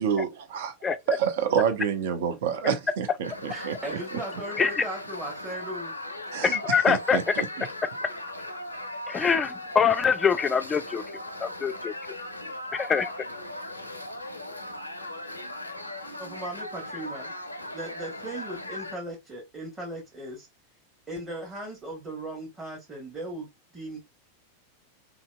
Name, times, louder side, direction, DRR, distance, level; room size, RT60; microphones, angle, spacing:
voice 1, 0.0-0.7 1.1-3.7 6.3-6.6 6.9-7.7, right 8 dB, 55° right, 0.6 m, -28 dB
sound 1, 3.2-19.0, left 1 dB, 85° left, 0.4 m, -38 dB
voice 2, 3.5-5.9 16.2-17.3 17.7-20.5 21.1-24.0, right 1 dB, 15° right, 1.1 m, -37 dB
voice 3, 6.4-7.3 9.1-11.0 11.4-11.9 12.7-13.1, left 6 dB, 20° left, 0.3 m, -24 dB
2.9 x 2.7 x 2.2 m
figure-of-eight pair, 90°, 0 cm